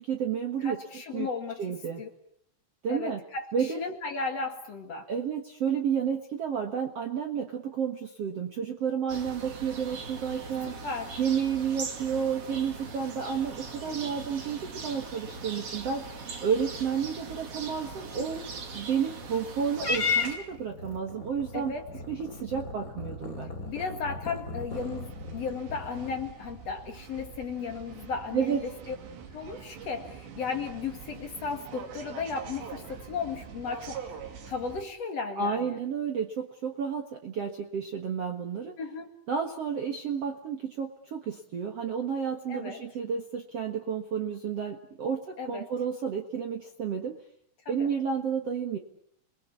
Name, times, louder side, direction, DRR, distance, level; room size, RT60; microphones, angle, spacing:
voice 1, 0.0-0.8 1.1-1.3 1.6-2.0 2.8-3.2 3.5-3.8 5.1-10.8 11.2-16.0 16.4-18.4 18.7-21.7 22.1-23.5 28.3-28.6 35.4-38.7 39.3-47.1 47.7-48.8, right 7 dB, 85° right, 3 dB, 1.3 m, -31 dB
voice 2, 0.6-2.1 2.9-5.1 10.8-11.2 13.8-14.2 18.1-18.5 21.5-21.9 23.7-28.9 29.3-34.2 34.5-35.8 38.8-39.1 42.5-42.8 45.4-45.7 47.7-47.9, left 5 dB, 45° left, 5 dB, 2.3 m, -35 dB
sound 1, 9.1-20.4, right 4 dB, 40° right, 2.4 m, -41 dB
Purr / Meow, 19.8-26.3, left 4 dB, 25° left, 2.3 m, -35 dB
sound 2, 24.7-34.8, right 7 dB, 65° right, 4.6 m, -44 dB
29.5 x 21.0 x 8.5 m, 0.66 s
omnidirectional pair, 5.4 m